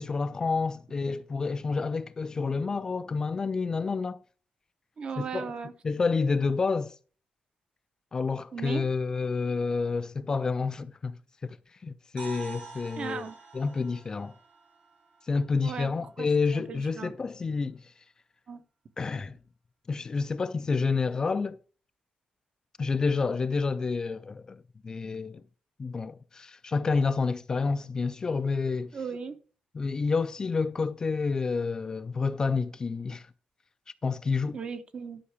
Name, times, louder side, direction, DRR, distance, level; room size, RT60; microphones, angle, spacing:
voice 1, 0.0-4.2 5.2-5.5 5.8-7.0 8.1-11.6 11.8-13.2 13.5-14.3 15.3-17.9 19.0-19.4 19.9-21.6 22.8-25.4 25.8-28.9 29.7-33.3 34.0-34.6, left 4 dB, 25° left, 0.3 m, -29 dB
voice 2, 5.0-5.7 8.5-8.8 13.0-13.4 15.6-15.9 16.2-16.3 16.5-17.1 18.5-18.6 28.9-29.4 34.5-35.2, right 6 dB, 40° right, 0.8 m, -36 dB
sound 1, 12.2-16.1, right 5 dB, 70° right, 5.2 m, -47 dB
11.5 x 5.7 x 4.8 m
wide cardioid pair, 170°, 3 cm